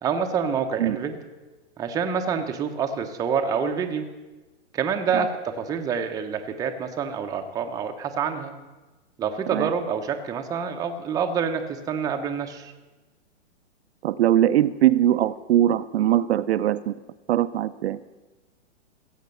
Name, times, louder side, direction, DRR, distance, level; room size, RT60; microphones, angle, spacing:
voice 1, 0.0-1.2 1.8-4.1 4.7-8.5 9.2-12.7, right 6 dB, 10° right, 4 dB, 0.6 m, -27 dB
voice 2, 14.0-16.9 17.3-18.0, right 12 dB, 60° right, 12 dB, 0.5 m, -21 dB
16.0 x 7.4 x 6.8 m, 1.2 s
hypercardioid pair, 145°, 36 cm